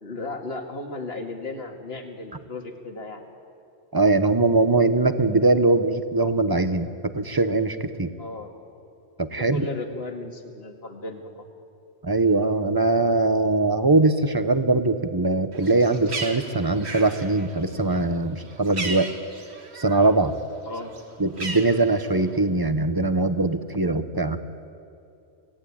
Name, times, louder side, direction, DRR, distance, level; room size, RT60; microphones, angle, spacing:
voice 1, 0.0-3.2 8.2-8.6 9.3-11.5 20.6-20.9, left 2 dB, 60° left, 4 dB, 2.3 m, -35 dB
voice 2, 3.9-8.1 9.2-9.6 12.0-19.1 19.7-20.3 21.2-24.4, right 2 dB, 20° right, 11 dB, 0.9 m, -21 dB
Bird, 15.5-20.1 20.4-22.4, right 3 dB, 65° right, 2.1 m, -36 dB
26.5 x 17.5 x 8.7 m, 2.7 s
omnidirectional pair, 1.2 m